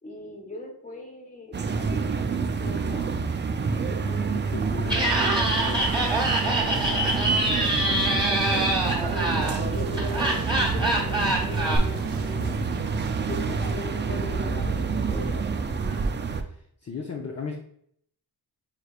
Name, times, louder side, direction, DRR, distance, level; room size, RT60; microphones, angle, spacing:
voice 1, 0.0-3.2 3.8-4.3 4.6-4.8 8.9-12.6 13.3-15.5 15.9-16.1, left 1 dB, 20° left, 0 dB, 1.2 m, -39 dB
sound 1, 1.5-16.4, right 5 dB, 30° right, 0.4 m, -28 dB
voice 2, 4.3-6.0 6.5-7.2 16.8-17.6, left 4 dB, 35° left, 0 dB, 0.7 m, -36 dB
Laughter, 4.8-11.8, right 1 dB, 10° right, 1.2 m, -25 dB
sound 2, 6.7-13.7, right 3 dB, 75° right, 0.7 m, -33 dB
5.5 x 3.3 x 2.4 m, 0.66 s
cardioid pair, 70°, 42 cm